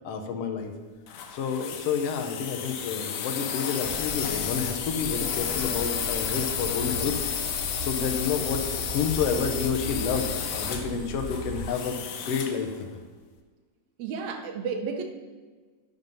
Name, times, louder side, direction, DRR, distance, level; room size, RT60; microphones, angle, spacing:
voice 1, 0.0-0.7 1.3-7.2 7.8-12.9, left 6 dB, 70° left, 5 dB, 1.5 m, -29 dB
sound 1, 1.1-12.6, left 8 dB, 90° left, 2.3 m, -32 dB
sound 2, 3.8-11.7, right 1 dB, 5° right, 1.1 m, -38 dB
voice 2, 14.0-15.0, right 5 dB, 75° right, 5 dB, 2.0 m, -32 dB
10.5 x 5.6 x 5.4 m, 1.4 s
omnidirectional pair, 3.5 m